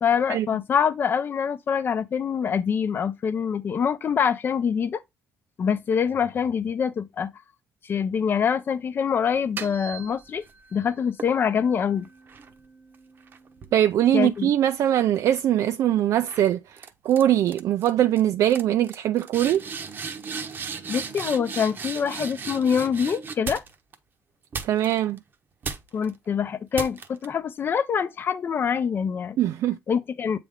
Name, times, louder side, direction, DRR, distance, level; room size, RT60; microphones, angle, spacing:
voice 1, 0.0-5.0 5.6-7.3 7.8-10.4 10.7-12.1 14.1-14.5 20.9-23.6 25.9-29.4 29.9-30.4, left 7 dB, 40° left, 0.6 m, -25 dB
sound 1, 9.3-10.6 11.2-14.8 15.1-15.5 16.3-16.5 16.8-17.2 17.5-17.9 18.2-18.3 18.5-23.9 24.5-25.2 25.6-26.1 26.7-27.3, right 5 dB, 35° right, 0.8 m, -37 dB
voice 2, 13.7-19.6 24.6-25.2 29.4-29.8, right 11 dB, 65° right, 0.4 m, -22 dB
8.3 x 3.4 x 3.6 m
cardioid pair, 155°, 6 cm